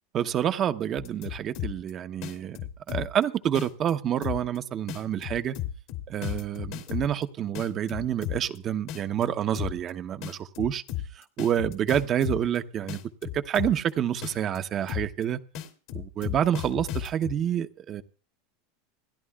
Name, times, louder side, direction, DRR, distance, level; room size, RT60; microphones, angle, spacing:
voice 1, 0.1-5.6 6.1-10.8 11.2-15.4 15.9-18.0, right 10 dB, 35° right, 0.9 m, -28 dB
sound 1, 1.0-1.9 2.2-3.2 3.5-3.9 4.2-4.6 4.9-7.2 7.5-8.6 8.9-9.2 9.5-9.9 10.2-12.6 12.9-13.9 14.2-14.6 14.9-15.2 15.5-17.3, left 12 dB, 65° left, 2.6 m, -34 dB
28.0 x 10.5 x 2.4 m
supercardioid pair, 115°, 0 cm